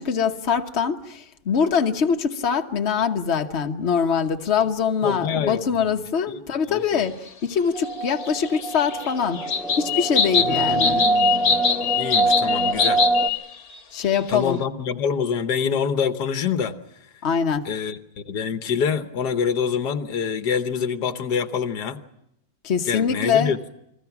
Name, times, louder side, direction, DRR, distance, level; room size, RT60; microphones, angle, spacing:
voice 1, 0.0-9.5 9.8-11.0 13.9-14.6 17.2-17.7 22.6-23.5, left 6 dB, 45° left, 1.3 m, -23 dB
voice 2, 5.0-5.6 6.0-6.4 6.7-7.0 10.4-11.6 12.0-13.0 14.3-16.7 17.6-22.0 22.9-23.6, left 6 dB, 90° left, 1.7 m, -26 dB
sound 1, 7.7-13.3, right 2 dB, ahead, 1.1 m, -24 dB
sound 2, 8.2-13.4 13.7-13.8 14.1-14.3, left 6 dB, 60° left, 1.6 m, -23 dB
29.5 x 20.5 x 6.0 m
omnidirectional pair, 1.7 m